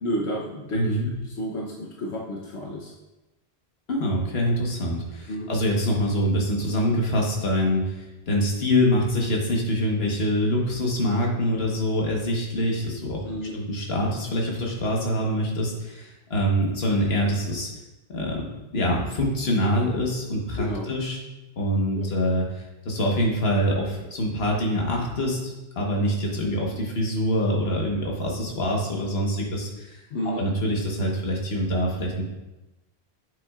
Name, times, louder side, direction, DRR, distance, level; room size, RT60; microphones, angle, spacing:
voice 1, 0.0-1.0 1.4-2.9 5.3-5.5 13.2-13.5 20.6-20.9 22.0-22.1 30.1-30.4, equal, 85° left, -3 dB, 1.2 m, -31 dB
voice 2, 0.7-1.1 3.9-13.2 13.5-17.7 18.1-21.2 21.6-30.0 30.4-32.3, equal, 70° left, -1 dB, 1.6 m, -25 dB
8.3 x 7.5 x 2.4 m, 1.0 s
omnidirectional pair, 1.1 m